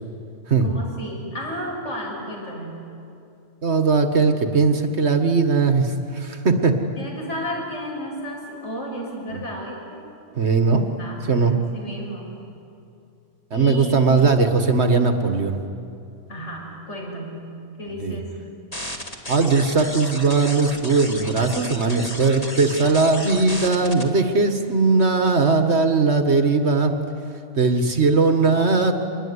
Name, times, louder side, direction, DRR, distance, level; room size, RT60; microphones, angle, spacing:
voice 1, 0.6-2.7 7.0-10.0 11.0-12.3 13.5-14.1 16.3-17.5 17.8-18.3, equal, 60° left, -2 dB, 7.4 m, -33 dB
voice 2, 3.6-6.8 9.3-9.4 10.4-10.9 11.3-11.6 13.5-15.6 18.0-18.2 19.3-27.0 27.6-28.9, right 4 dB, 55° right, 6 dB, 1.8 m, -19 dB
sound 1, 18.7-24.0, equal, 25° left, 2.2 m, -33 dB
26.5 x 21.0 x 9.7 m, 2.6 s
omnidirectional pair, 1.4 m